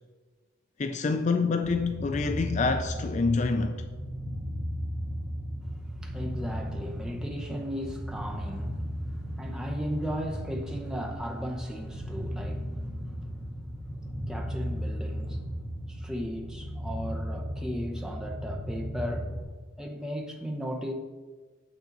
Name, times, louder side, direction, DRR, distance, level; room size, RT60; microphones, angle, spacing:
voice 1, 0.8-3.8, left 4 dB, 35° left, 0.4 m, -27 dB
sound 1, 1.6-19.4, equal, 20° right, 1.5 m, -35 dB
voice 2, 5.6-13.4 14.0-15.5 15.8-19.3 19.8-20.9, equal, 5° right, 0.7 m, -36 dB
8.9 x 7.2 x 3.9 m
head